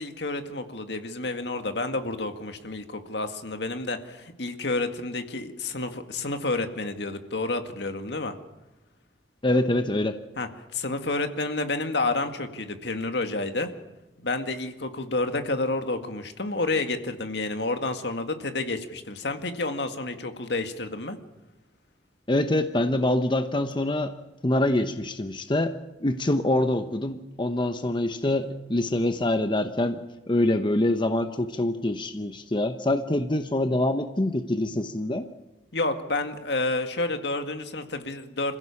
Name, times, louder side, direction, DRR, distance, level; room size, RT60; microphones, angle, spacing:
voice 1, 0.0-8.3 10.4-13.7 14.2-21.2 35.7-38.6, left 2 dB, 70° left, 7 dB, 2.0 m, -30 dB
voice 2, 9.4-10.2 22.3-24.1 24.4-25.8 26.0-30.0 30.3-35.3, left 1 dB, 25° left, 8 dB, 1.0 m, -25 dB
27.0 x 16.0 x 7.2 m, 1.1 s
head